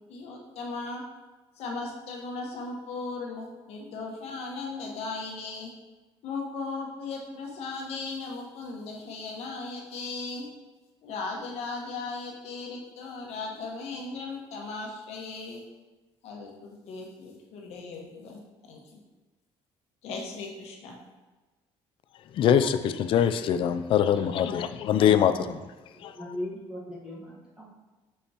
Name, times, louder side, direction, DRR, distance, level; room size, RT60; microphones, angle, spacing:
voice 1, 0.1-1.0 1.6-5.7 6.2-10.5 11.0-15.6 16.2-18.4 18.7-18.8 20.0-21.0, left 3 dB, 70° left, 1.3 m, -37 dB
voice 2, 22.4-25.6 26.0-26.1, left 9 dB, 50° left, 0.4 m, -23 dB
voice 3, 24.5-24.9 25.4-25.5 26.2-27.7, left 1 dB, 10° right, 1.3 m, -39 dB
6.3 x 5.5 x 2.9 m
cardioid pair, 130°, 11 cm